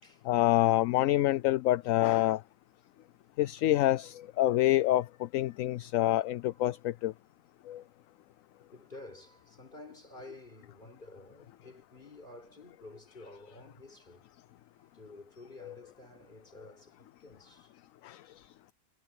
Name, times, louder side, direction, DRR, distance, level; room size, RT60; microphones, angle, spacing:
voice 1, 0.2-2.4 3.4-7.1 7.7-7.8 15.6-15.7 18.0-18.2, left 15 dB, 70° left, 0.9 m, -27 dB
voice 2, 8.7-14.3 14.8-17.7, left 2 dB, 30° left, 4.9 m, -51 dB
omnidirectional pair, 1.6 m